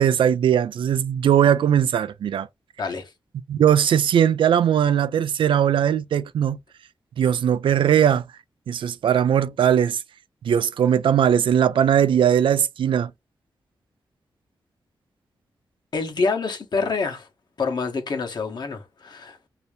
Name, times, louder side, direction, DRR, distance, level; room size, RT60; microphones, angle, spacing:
voice 1, 0.0-2.5 3.5-6.6 7.2-8.3 8.7-10.0 10.4-13.1, right 9 dB, 80° right, 0.4 m, -19 dB
voice 2, 2.8-3.1 15.9-17.3 17.6-19.5, left 4 dB, 55° left, 1.1 m, -27 dB
2.8 x 2.6 x 3.3 m
cardioid pair, 85°, 8 cm